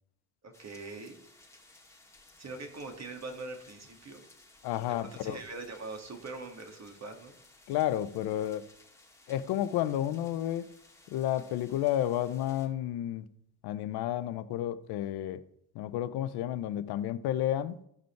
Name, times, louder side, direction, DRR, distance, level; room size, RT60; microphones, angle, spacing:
voice 1, 0.4-1.2 2.4-4.2 5.0-7.3, right 3 dB, 40° right, 2.4 m, -42 dB
sound 1, 0.5-12.7, left 2 dB, 5° left, 2.2 m, -59 dB
voice 2, 4.6-5.4 7.7-8.7 9.3-10.7 11.1-13.3 13.6-15.4 15.7-17.8, left 12 dB, 70° left, 0.8 m, -31 dB
14.5 x 5.1 x 4.6 m
hypercardioid pair, 60°, 40 cm